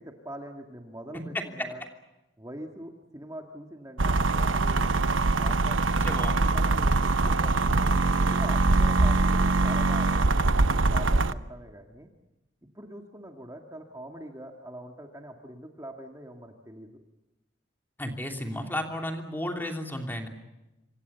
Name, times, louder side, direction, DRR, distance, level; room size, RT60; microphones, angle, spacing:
voice 1, 0.0-1.8 2.4-4.8 5.3-7.8 8.1-12.1 12.7-17.1, right 1 dB, 15° right, 3 dB, 2.0 m, -43 dB
voice 2, 1.3-1.7 6.1-6.4 18.0-20.3, left 1 dB, 10° left, 4 dB, 3.0 m, -33 dB
sound 1, 4.0-11.3, right 3 dB, 90° right, 0.9 m, -23 dB
27.5 x 25.5 x 6.9 m, 0.98 s
head